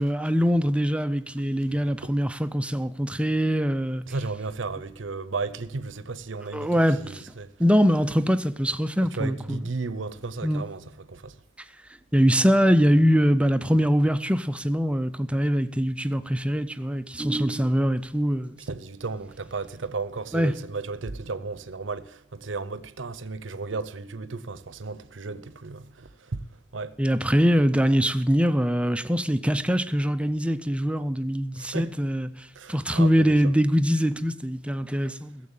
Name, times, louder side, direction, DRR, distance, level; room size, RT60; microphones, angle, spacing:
voice 1, 0.0-4.0 6.5-7.0 7.6-9.6 10.4-10.6 12.1-18.6 20.3-20.5 27.0-35.4, equal, 5° right, 0.5 m, -23 dB
voice 2, 1.6-2.2 4.1-7.5 9.0-11.4 18.7-26.5 26.7-27.0 31.5-32.0 32.5-33.5, right 3 dB, 70° right, 0.8 m, -34 dB
16.0 x 7.5 x 7.2 m
head